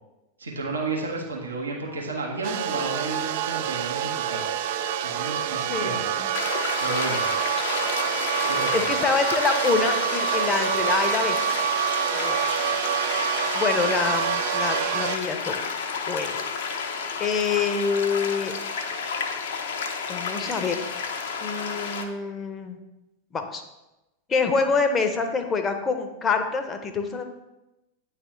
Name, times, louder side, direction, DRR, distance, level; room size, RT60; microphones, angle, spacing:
voice 1, 0.4-4.5 5.0-6.1 6.8-7.2 8.5-8.8, right 3 dB, 75° right, -1 dB, 1.0 m, -32 dB
sound 1, 2.4-15.2, right 9 dB, 50° right, 0.3 m, -27 dB
voice 2, 5.6-6.3 8.7-11.4 12.1-12.4 13.5-15.5 16.1-16.4 17.2-18.5 20.1-20.8 21.4-22.8 23.3-23.6 24.3-27.2, left 4 dB, 20° left, 6 dB, 0.7 m, -26 dB
sound 2, 6.3-22.1, left 5 dB, 55° left, 0.6 m, -31 dB
9.4 x 3.3 x 3.1 m, 0.98 s
figure-of-eight pair, 90°, 0 cm